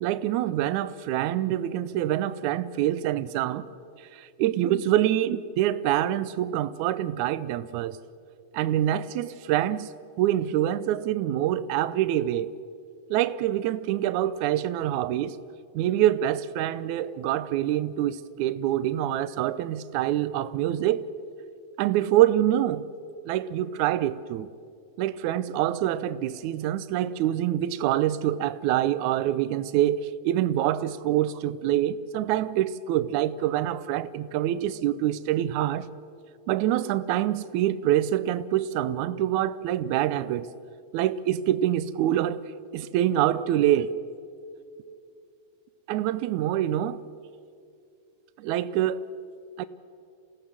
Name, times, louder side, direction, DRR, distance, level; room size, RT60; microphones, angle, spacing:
voice 1, 0.0-3.6 4.1-8.0 8.5-9.9 10.2-12.5 13.1-15.4 15.7-21.0 21.8-22.8 23.3-24.5 25.0-35.9 36.5-40.5 40.9-42.4 42.7-43.9 45.9-47.0 48.4-49.1 49.6-49.7, right 12 dB, 75° right, 1.9 m, -25 dB
28.0 x 17.0 x 7.4 m
omnidirectional pair, 4.0 m